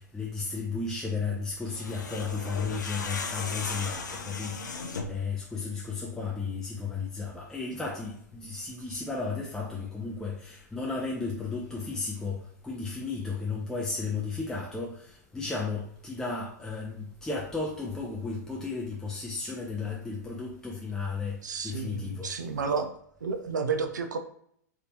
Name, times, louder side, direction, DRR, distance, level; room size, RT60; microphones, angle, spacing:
voice 1, 0.1-4.5 5.1-21.4 21.6-22.3, left 4 dB, 5° left, -3 dB, 0.5 m, -34 dB
sound 1, 1.6-5.3, left 4 dB, 80° left, 0.6 m, -36 dB
voice 2, 21.4-22.9 23.2-24.2, right 5 dB, 80° right, 7 dB, 0.5 m, -31 dB
3.5 x 2.8 x 2.8 m, 0.68 s
hypercardioid pair, 110°, 10 cm